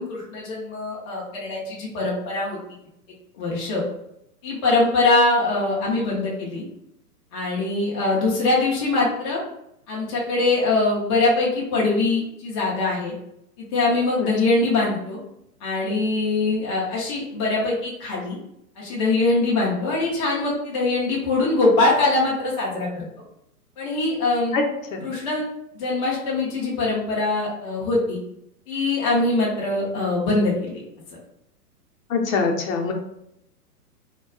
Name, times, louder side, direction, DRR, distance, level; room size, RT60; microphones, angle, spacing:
voice 1, 0.0-2.6 3.4-3.8 4.4-6.6 7.3-9.4 9.9-13.1 13.6-15.2 15.6-18.4 18.8-23.0 23.8-24.6 25.0-25.5 25.7-28.2 28.7-30.8, left 2 dB, 20° left, -5 dB, 0.4 m, -22 dB
voice 2, 32.1-32.9, left 4 dB, 55° left, 2 dB, 0.7 m, -23 dB
2.2 x 2.2 x 3.5 m, 0.78 s
hypercardioid pair, 120°, 47 cm